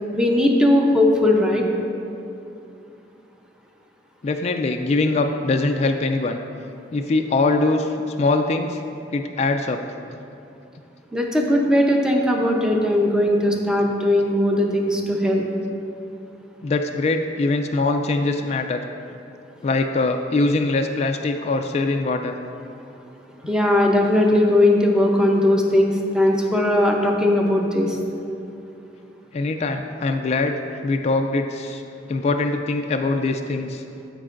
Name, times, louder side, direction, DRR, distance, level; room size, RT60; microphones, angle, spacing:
voice 1, 0.1-1.6 11.1-15.4 23.5-28.0, left 1 dB, 5° right, 0 dB, 0.7 m, -18 dB
voice 2, 4.2-6.4 6.9-8.8 9.1-9.8 16.6-18.8 19.6-22.4 29.3-31.8 32.1-33.8, left 3 dB, 40° left, 5 dB, 0.3 m, -22 dB
14.0 x 5.3 x 2.5 m, 2.6 s
head